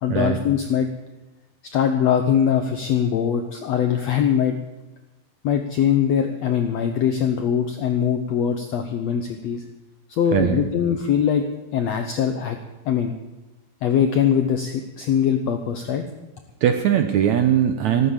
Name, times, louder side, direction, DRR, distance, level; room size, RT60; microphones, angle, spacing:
voice 1, 0.0-0.9 1.7-4.5 5.4-9.6 10.1-11.4 11.7-12.6 12.8-13.1 13.8-16.0, left 8 dB, 75° left, 6 dB, 1.5 m, -22 dB
voice 2, 10.3-10.7 16.6-18.1, right 9 dB, 75° right, 7 dB, 1.8 m, -20 dB
14.0 x 13.5 x 7.2 m, 1.1 s
omnidirectional pair, 4.2 m